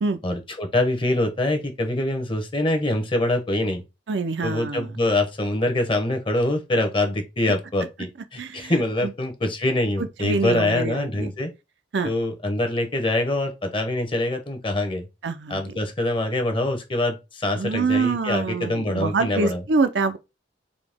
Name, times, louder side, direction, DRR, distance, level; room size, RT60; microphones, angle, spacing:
voice 1, 0.2-3.8 4.4-11.5 12.0-15.1 15.5-19.6, left 1 dB, 30° left, 0.9 m, -24 dB
voice 2, 4.1-4.9 8.4-8.7 9.0-9.1 10.2-11.3 11.9-12.1 15.2-15.7 17.6-20.2, right 4 dB, 70° right, 0.5 m, -25 dB
4.1 x 2.8 x 3.5 m
head